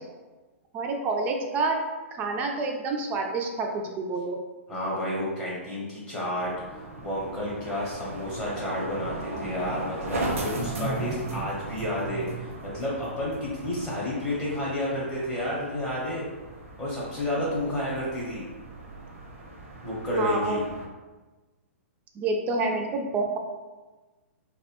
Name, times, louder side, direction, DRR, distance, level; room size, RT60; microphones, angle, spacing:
voice 1, 0.7-1.8 2.1-4.4 20.2-20.6 22.2-23.4, right 3 dB, 20° right, 2 dB, 0.3 m, -28 dB
voice 2, 4.7-16.2 16.8-18.5 19.8-20.7, left 1 dB, 15° left, -7 dB, 0.7 m, -31 dB
sound 1, 6.4-20.9, right 2 dB, 75° right, 0.6 m, -37 dB
2.8 x 2.1 x 2.8 m, 1.2 s
hypercardioid pair, 130°, 7 cm